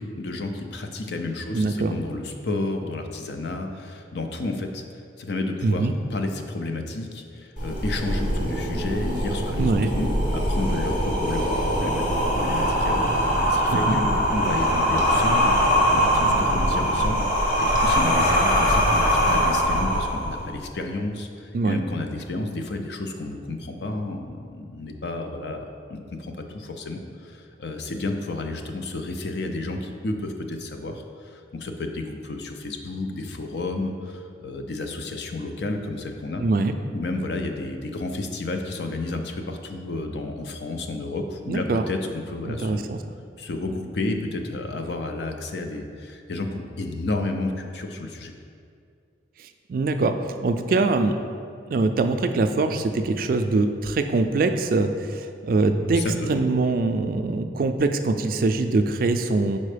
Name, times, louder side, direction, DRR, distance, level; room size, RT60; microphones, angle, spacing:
voice 1, 0.0-17.3 17.6-36.4 36.9-42.9 43.4-48.3 56.0-56.1, left 2 dB, 65° left, 5 dB, 0.5 m, -31 dB
voice 2, 1.5-1.9 5.6-5.9 9.6-9.9 13.7-14.0 21.5-21.8 36.4-36.8 41.5-41.8 42.5-43.0 49.7-50.1 50.4-51.1 51.7-56.0 56.3-59.6, right 3 dB, 50° right, 7 dB, 0.3 m, -23 dB
sound 1, 7.6-20.5, equal, 45° left, 1.0 m, -22 dB
sound 2, 8.0-17.1, right 1 dB, 90° right, 0.6 m, -33 dB
5.4 x 4.3 x 5.0 m, 2.3 s
head